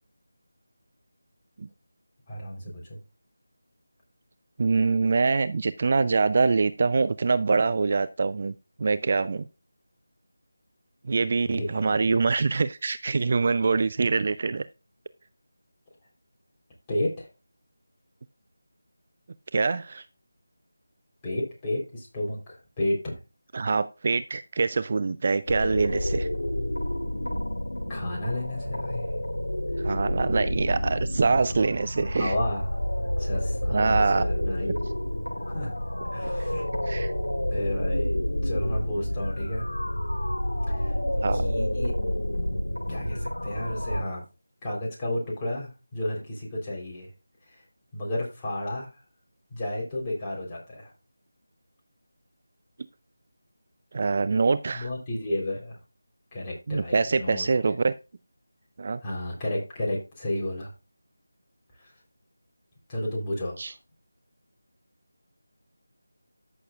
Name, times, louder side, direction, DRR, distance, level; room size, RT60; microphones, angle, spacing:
voice 1, 2.3-3.0 11.5-12.0 16.9-17.3 21.2-23.1 27.9-29.1 29.8-30.0 32.2-32.7 33.0-34.9 35.5-35.7 36.1-36.6 37.5-38.1 38.4-39.7 40.7-41.0 41.3-41.9 42.8-44.2 44.6-47.1 47.5-47.6 47.9-48.9 49.5-50.9 54.7-55.8 56.3-57.5 59.0-60.7 61.7-61.9 62.9-63.8, left 1 dB, 20° left, -4 dB, 3.5 m, -32 dB
voice 2, 4.6-9.5 11.0-14.7 19.5-20.1 23.5-26.3 29.8-32.3 33.7-34.3 36.4-36.5 36.8-37.1 41.2-41.5 53.9-54.9 56.7-57.9 58.8-59.0 63.6-63.7, right 4 dB, 40° right, 14 dB, 0.4 m, -24 dB
sound 1, 25.5-44.0, left 1 dB, 80° left, 1.8 m, -29 dB
13.5 x 6.6 x 2.4 m, 0.28 s
figure-of-eight pair, 165°, 0 cm